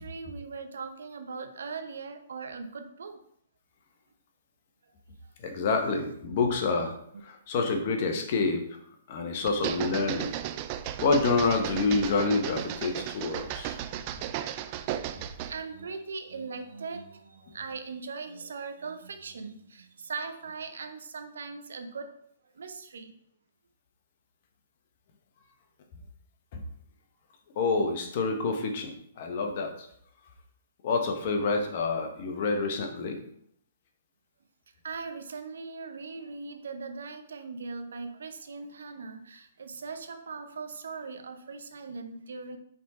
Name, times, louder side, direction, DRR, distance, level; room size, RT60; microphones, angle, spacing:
voice 1, 0.0-3.2 5.2-5.3 15.2-22.1 22.5-23.1 34.8-42.6, right 4 dB, 70° right, 7 dB, 0.7 m, -40 dB
voice 2, 5.4-6.9 7.2-8.7 9.1-10.3 11.0-13.8 26.5-26.6 27.5-29.9 30.8-33.2, left 4 dB, 50° left, 4 dB, 1.1 m, -28 dB
sound 1, 9.5-15.6, right 11 dB, 40° right, 0.4 m, -35 dB
5.7 x 3.8 x 4.4 m, 0.68 s
figure-of-eight pair, 120°, 0 cm